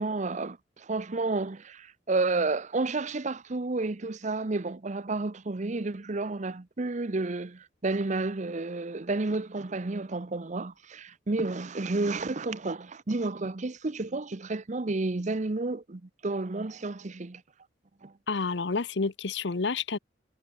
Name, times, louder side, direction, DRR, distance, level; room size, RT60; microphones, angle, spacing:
voice 1, 0.0-17.4 18.0-18.1, right 3 dB, 40° right, 0.8 m, -31 dB
voice 2, 18.3-20.0, left 4 dB, 70° left, 0.8 m, -29 dB
head